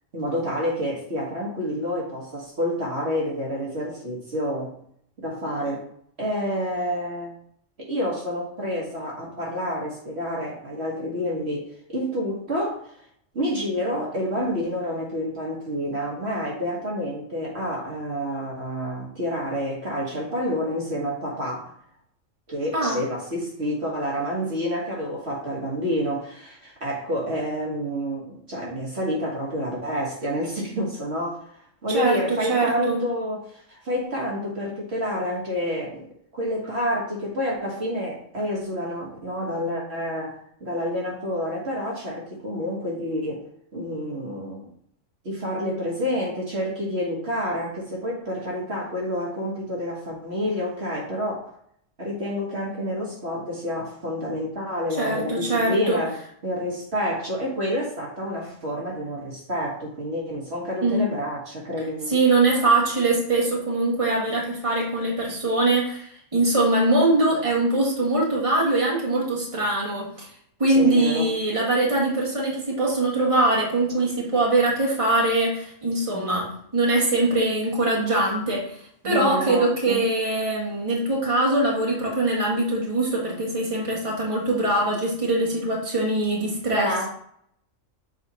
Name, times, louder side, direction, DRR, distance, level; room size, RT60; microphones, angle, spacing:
voice 1, 0.1-4.7 5.2-5.9 6.2-7.4 7.8-12.9 13.3-21.7 22.5-31.4 31.8-36.1 36.3-43.4 43.7-44.7 45.3-51.6 52.0-56.2 56.4-62.1 70.7-71.3 79.0-80.0 86.7-87.1, equal, 55° right, -4 dB, 1.8 m, -28 dB
voice 2, 31.9-33.0 55.0-56.0 60.8-61.1 62.1-70.3 70.6-78.8 79.0-87.1, right 2 dB, 25° right, -3 dB, 1.8 m, -22 dB
7.1 x 4.3 x 4.2 m, 0.67 s
omnidirectional pair, 1.3 m